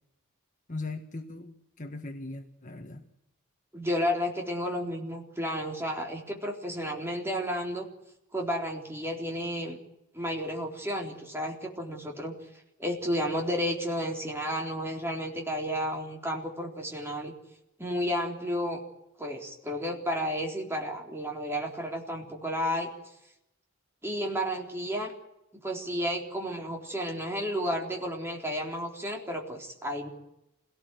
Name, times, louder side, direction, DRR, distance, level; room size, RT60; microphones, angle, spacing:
voice 1, 0.7-3.0, left 2 dB, 40° left, 4 dB, 1.6 m, -39 dB
voice 2, 3.7-7.9 8.3-9.8 10.1-12.3 12.8-17.3 17.8-18.8 19.2-22.9 24.0-25.1 25.6-30.1, equal, 10° right, 0 dB, 3.9 m, -32 dB
26.5 x 18.0 x 8.0 m, 0.87 s
head